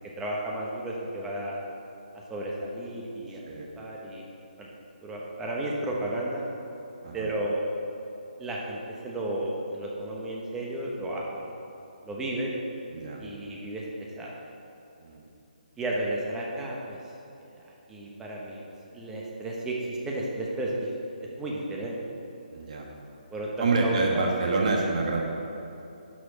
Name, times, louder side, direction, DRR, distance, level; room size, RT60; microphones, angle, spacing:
voice 1, 0.2-1.6 2.3-4.3 4.6-4.7 5.0-6.4 7.1-7.7 8.4-8.8 9.0-11.6 12.0-12.5 13.2-14.4 15.8-17.0 17.5-17.6 17.9-18.6 18.9-20.9 21.2-21.9 23.3-23.5 23.8-24.3, right 1 dB, 10° right, -3 dB, 1.1 m, -33 dB
voice 2, 22.5-22.9 23.6-25.2, right 3 dB, 50° right, -1 dB, 1.5 m, -27 dB
11.0 x 5.0 x 6.3 m, 2.9 s
hypercardioid pair, 155°, 5 cm